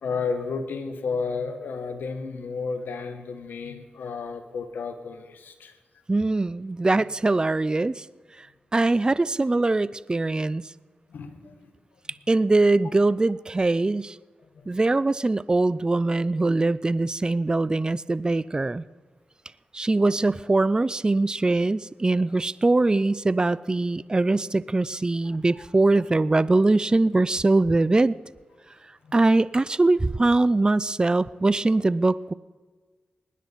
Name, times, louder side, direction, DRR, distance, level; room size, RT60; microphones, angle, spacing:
voice 1, 0.0-5.7 11.1-11.5 14.5-14.7 29.0-29.1, left 4 dB, 85° left, 8 dB, 1.2 m, -32 dB
voice 2, 6.1-8.1 8.4-8.5 8.7-10.6 12.3-14.2 14.7-18.8 19.7-28.2 29.1-32.3, right 2 dB, 25° right, 19 dB, 0.4 m, -22 dB
19.5 x 9.9 x 4.0 m, 1.4 s
cardioid pair, 50°, 3 cm